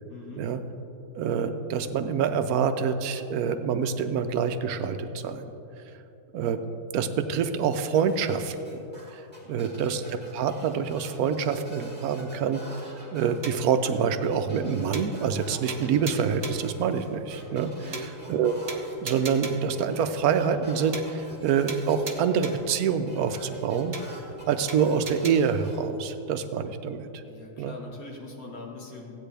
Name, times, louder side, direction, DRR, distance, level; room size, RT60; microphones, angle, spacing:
voice 1, 0.1-0.5 9.4-9.9 17.8-18.1 27.2-29.1, left 3 dB, 65° left, -1 dB, 2.0 m, -43 dB
voice 2, 1.1-5.4 6.3-6.6 6.9-8.8 9.1-9.2 9.5-12.6 13.1-24.0 24.5-27.1 27.6-27.8, right 6 dB, 75° right, 9 dB, 1.0 m, -26 dB
sound 1, 7.9-25.8, right 1 dB, 5° left, 2.6 m, -49 dB
sound 2, 13.4-13.8 14.2-14.3 14.6-14.7 14.9-15.4 15.7-16.7 17.2-17.3 17.6-17.7 17.9-18.4 18.7-19.8 20.2-20.3 20.6-20.7 20.9-21.4 21.7-22.8 23.2-23.3 23.6-23.7 23.9-24.4 24.7-25.3, right 3 dB, 35° right, 0.6 m, -37 dB
15.5 x 8.9 x 3.4 m, 2.9 s
omnidirectional pair, 1.7 m